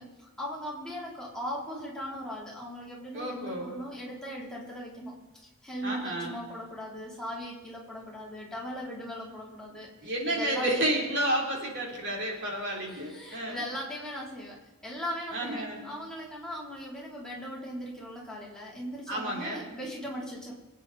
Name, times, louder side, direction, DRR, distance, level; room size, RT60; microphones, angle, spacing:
voice 1, 0.0-5.2 5.6-10.9 12.8-20.5, equal, 5° left, -5 dB, 3.4 m, -39 dB
voice 2, 3.1-3.7 5.8-6.4 10.0-13.6 15.3-15.9 19.1-19.6, right 1 dB, 55° right, -1 dB, 3.6 m, -31 dB
24.5 x 9.2 x 4.2 m, 1.2 s
head